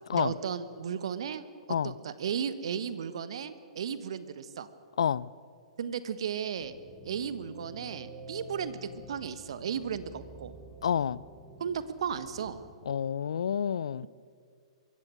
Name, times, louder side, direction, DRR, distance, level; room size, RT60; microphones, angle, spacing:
voice 1, 0.1-1.4 1.8-4.7 5.8-6.8 7.0-10.5 11.6-12.6, right 7 dB, 60° right, 13 dB, 1.3 m, -35 dB
voice 2, 5.0-5.3 10.8-11.2 12.9-14.1, left 8 dB, 65° left, 22 dB, 0.5 m, -29 dB
sound 1, 6.6-12.7, right 1 dB, 5° left, 6.3 m, -49 dB
23.5 x 15.0 x 7.7 m, 2.2 s
figure-of-eight pair, 110°, 3 cm